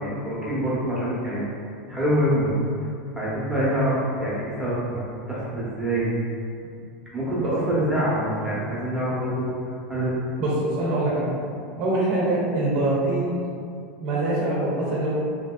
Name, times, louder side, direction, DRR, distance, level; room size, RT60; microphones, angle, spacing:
voice 1, 0.0-1.4 1.9-2.5 2.8-2.9 3.1-5.0 5.3-6.1 7.1-10.1, equal, 5° right, -9 dB, 0.9 m, -25 dB
voice 2, 10.4-11.3 11.8-13.4 14.0-15.1, right 2 dB, 55° right, -6 dB, 0.7 m, -24 dB
2.9 x 2.6 x 2.3 m, 2.4 s
supercardioid pair, 120°, 7 cm